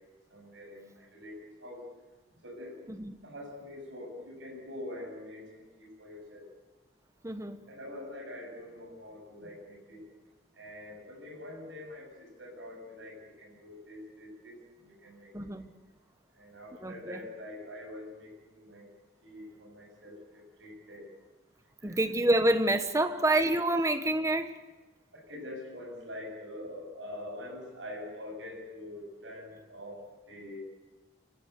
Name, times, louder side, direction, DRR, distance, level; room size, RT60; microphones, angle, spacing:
voice 1, 0.3-1.8 2.4-2.8 3.2-6.5 7.7-10.0 10.5-15.3 16.3-18.9 19.2-21.1 21.8-22.0 25.1-30.6, left 1 dB, 70° right, 0 dB, 7.6 m, -45 dB
voice 2, 7.2-7.6 15.3-15.7 16.8-17.2 21.8-24.6, right 1 dB, 15° right, 9 dB, 1.2 m, -27 dB
26.5 x 15.0 x 8.2 m, 1.2 s
head